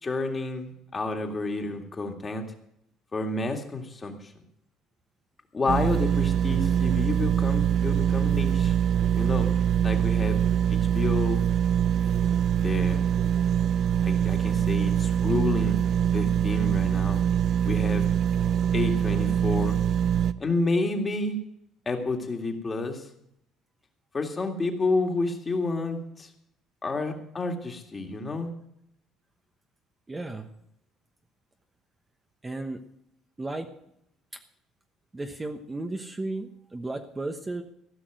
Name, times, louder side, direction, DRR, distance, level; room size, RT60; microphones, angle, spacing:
voice 1, 0.0-2.5 3.1-4.3 5.5-8.8 9.2-9.5 9.8-10.4 10.7-11.4 12.6-13.1 14.0-15.8 16.1-17.2 17.6-18.1 18.7-19.8 20.4-21.4 21.9-23.1 24.1-26.3 26.8-28.5, left 3 dB, 25° left, 4 dB, 2.1 m, -30 dB
sound 1, 5.7-20.3, right 9 dB, 55° right, 0.6 m, -24 dB
voice 2, 30.1-30.5 32.4-32.9 33.4-33.7 35.1-37.6, right 2 dB, 15° right, 5 dB, 1.1 m, -34 dB
15.5 x 6.0 x 9.2 m, 0.76 s
cardioid pair, 105°, 0 cm